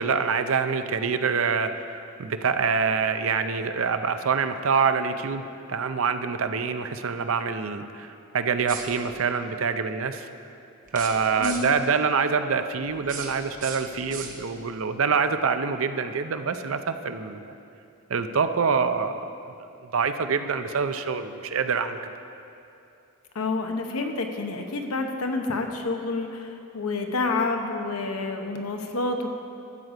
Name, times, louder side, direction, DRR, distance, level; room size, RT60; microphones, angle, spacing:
voice 1, 0.0-5.4 5.7-10.3 10.9-17.5 18.1-19.3 19.9-22.1, right 5 dB, 70° right, 9 dB, 0.5 m, -26 dB
sound 1, 8.6-9.3 10.8-11.9 12.9-14.7, right 5 dB, 40° right, 1.0 m, -39 dB
voice 2, 11.4-11.7 23.3-29.3, left 3 dB, 80° left, 4 dB, 1.0 m, -28 dB
12.5 x 8.0 x 5.0 m, 2.7 s
head